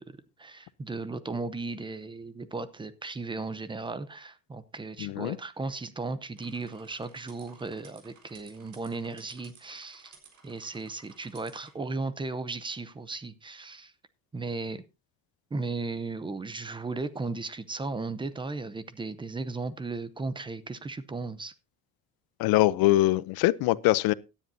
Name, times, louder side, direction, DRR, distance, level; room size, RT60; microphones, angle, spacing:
voice 1, 0.0-10.1 10.4-13.9 14.3-14.8 15.5-21.5, right 3 dB, 15° right, 0.7 m, -36 dB
voice 2, 5.0-5.4 22.4-24.1, left 17 dB, 85° left, 0.7 m, -23 dB
sound 1, 6.4-11.7, right 6 dB, 55° right, 4.1 m, -56 dB
17.0 x 10.0 x 2.7 m
cardioid pair, 165°, 35 cm